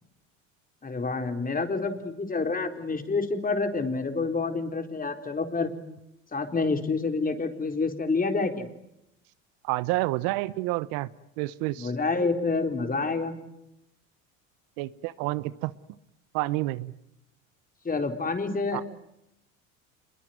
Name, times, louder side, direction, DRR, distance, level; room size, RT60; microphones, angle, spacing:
voice 1, 0.8-5.7 6.3-8.7 11.8-13.4 17.8-18.8, left 3 dB, 20° left, 6 dB, 4.1 m, -28 dB
voice 2, 9.6-11.1 11.4-11.9 14.8-15.7 16.3-16.9 18.7-18.8, right 19 dB, 65° right, 16 dB, 1.1 m, -29 dB
27.5 x 22.0 x 9.2 m, 0.83 s
hypercardioid pair, 80°, 38 cm